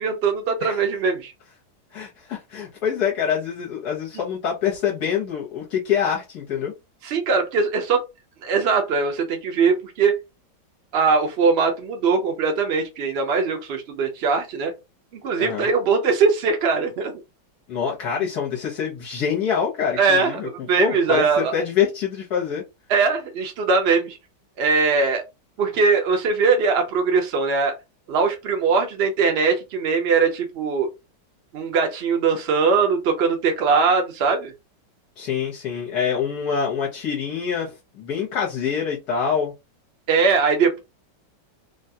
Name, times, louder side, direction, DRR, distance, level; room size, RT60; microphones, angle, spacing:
voice 1, 0.0-1.3 7.0-8.0 8.4-10.1 10.9-14.7 15.2-17.1 20.0-21.5 22.9-24.2 24.6-25.2 25.6-27.7 28.1-30.9 31.5-34.5 40.1-40.8, right 5 dB, 80° right, 4 dB, 0.5 m, -21 dB
voice 2, 1.9-6.7 15.4-15.7 17.7-20.5 20.8-22.6 35.2-39.5, left 7 dB, 65° left, -3 dB, 1.4 m, -25 dB
3.5 x 2.3 x 2.6 m, 0.24 s
omnidirectional pair, 1.9 m